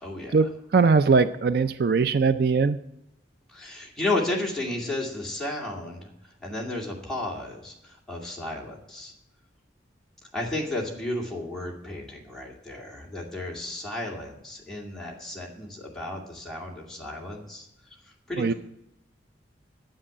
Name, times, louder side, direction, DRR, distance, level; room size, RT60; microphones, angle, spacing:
voice 1, 0.0-0.4 3.5-6.1 6.4-7.7 8.1-9.1 10.3-17.7 18.3-18.5, left 2 dB, ahead, -3 dB, 2.4 m, -33 dB
voice 2, 0.7-2.8 18.4-18.5, right 4 dB, 55° right, 12 dB, 0.4 m, -20 dB
9.8 x 7.6 x 8.8 m, 0.83 s
head